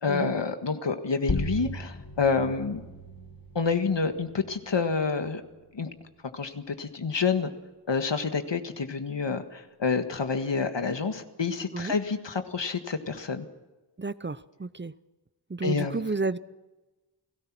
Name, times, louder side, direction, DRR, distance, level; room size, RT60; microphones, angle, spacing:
voice 1, 0.0-2.8 3.6-5.4 5.7-5.9 6.3-7.5 7.9-13.5 15.6-16.0, left 5 dB, 85° left, 7 dB, 1.7 m, -28 dB
sound 1, 1.3-6.4, left 1 dB, 55° left, 2.3 m, -37 dB
voice 2, 14.0-14.9 15.5-16.4, right 3 dB, 25° right, 16 dB, 0.7 m, -31 dB
30.0 x 17.5 x 6.1 m, 1.1 s
wide cardioid pair, 50°, 42 cm